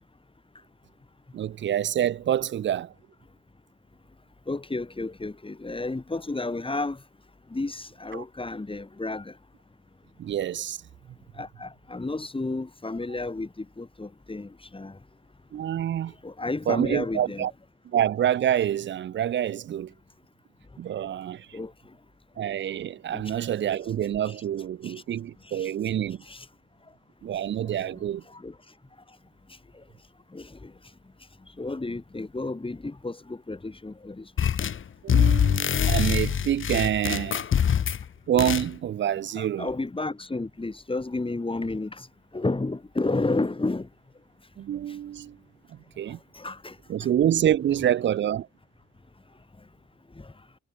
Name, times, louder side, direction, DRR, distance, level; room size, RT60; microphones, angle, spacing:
voice 1, 1.3-2.9 8.1-8.2 10.2-10.8 15.5-16.1 16.7-17.5 17.9-19.9 20.8-21.6 22.4-26.2 27.2-28.2 35.0-37.4 38.3-39.7 44.6-45.4 46.0-46.2 46.9-48.5, right 10 dB, 40° right, 0.4 m, -27 dB
voice 2, 4.5-7.0 7.5-9.3 11.4-15.0 16.2-17.5 21.5-21.7 23.1-23.3 24.3-24.4 24.8-24.9 25.5-25.7 26.2-26.5 27.7-27.9 28.3-28.6 30.3-30.7 31.6-34.3 39.3-42.1 42.3-43.9 46.3-46.8 50.2-50.3, left 2 dB, 15° left, 1.8 m, -32 dB
sound 1, 34.4-34.8 35.1-38.0 38.4-38.7, left 8 dB, 40° left, 0.7 m, -24 dB
supercardioid pair, 55°, 31 cm